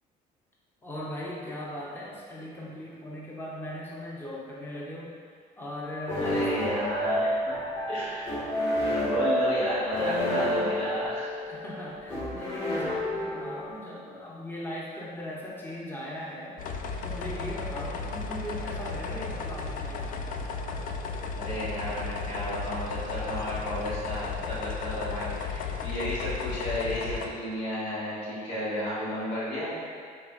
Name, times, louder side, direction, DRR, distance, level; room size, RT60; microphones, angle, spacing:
voice 1, 0.8-5.1 5.6-6.7 11.4-16.6 17.0-20.2, left 1 dB, 10° left, -5 dB, 0.7 m, -39 dB
sound 1, 6.1-13.8, equal, 30° left, 1.4 m, -29 dB
voice 2, 6.2-7.5 7.9-8.4 8.9-11.4 21.4-29.7, equal, 90° left, -8 dB, 1.5 m, -33 dB
sound 2, 16.6-27.3, left 5 dB, 55° left, 0.4 m, -34 dB
4.8 x 3.8 x 2.4 m, 2.1 s
cardioid pair, 110°, 17 cm